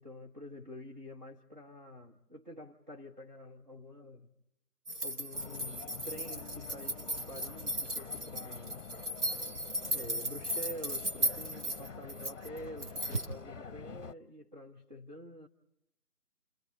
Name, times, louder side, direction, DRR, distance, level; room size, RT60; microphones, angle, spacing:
voice 1, 0.0-4.3 5.0-8.8 9.9-15.5, left 1 dB, 30° right, 1.3 m, -47 dB
sound 1, 4.9-13.3, right 1 dB, 50° right, 2.2 m, -36 dB
sound 2, 5.3-14.1, left 5 dB, 50° left, 0.8 m, -47 dB
29.5 x 28.0 x 4.0 m
figure-of-eight pair, 170°, 46 cm